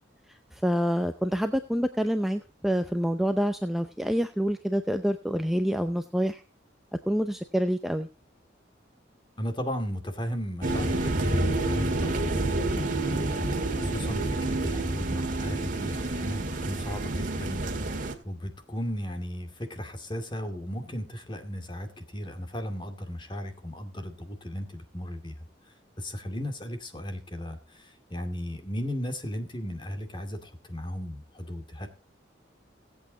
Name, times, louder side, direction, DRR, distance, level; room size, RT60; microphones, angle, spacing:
voice 1, 0.5-6.4 7.1-8.1, equal, ahead, 7 dB, 0.6 m, -27 dB
voice 2, 9.4-13.5 13.8-17.6 17.9-25.4 26.0-31.9, equal, 25° left, 6 dB, 2.4 m, -36 dB
sound 1, 10.6-18.1, right 2 dB, 45° right, 2.0 m, -28 dB
18.0 x 8.5 x 4.0 m, 0.31 s
head